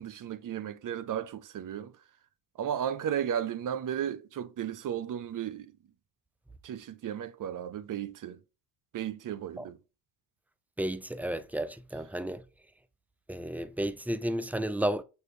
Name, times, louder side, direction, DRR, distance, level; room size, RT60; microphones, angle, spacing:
voice 1, 0.0-1.9 2.6-5.7 6.6-8.4 8.9-9.8, right 9 dB, 45° right, 0.7 m, -34 dB
voice 2, 10.8-12.4 13.3-15.0, right 1 dB, 5° right, 0.4 m, -32 dB
6.3 x 2.6 x 3.2 m
hypercardioid pair, 60°, 47 cm